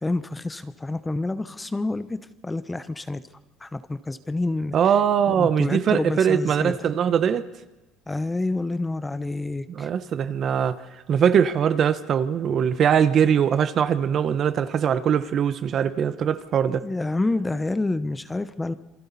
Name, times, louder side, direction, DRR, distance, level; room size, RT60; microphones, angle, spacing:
voice 1, 0.0-2.2 2.4-3.2 3.6-4.8 5.3-6.9 8.1-9.9 16.7-18.7, left 2 dB, 10° left, 0.8 m, -28 dB
voice 2, 4.7-7.5 9.7-10.8 11.1-16.9, right 8 dB, 45° right, 1.0 m, -21 dB
27.5 x 23.0 x 4.2 m
cardioid pair, 115°, 0 cm